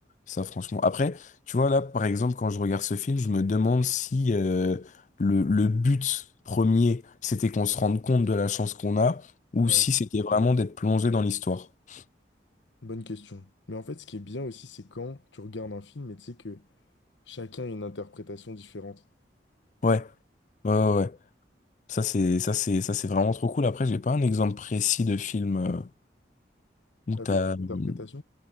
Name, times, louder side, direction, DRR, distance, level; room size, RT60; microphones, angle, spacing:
voice 1, 0.3-4.9 5.2-6.2 6.5-9.2 9.5-12.0 19.8-20.1 20.6-21.2 21.9-25.9 27.1-27.9, left 4 dB, 40° left, 0.4 m, -25 dB
voice 2, 12.8-16.7 17.3-19.0 27.2-28.2, left 2 dB, 90° left, 1.2 m, -39 dB
head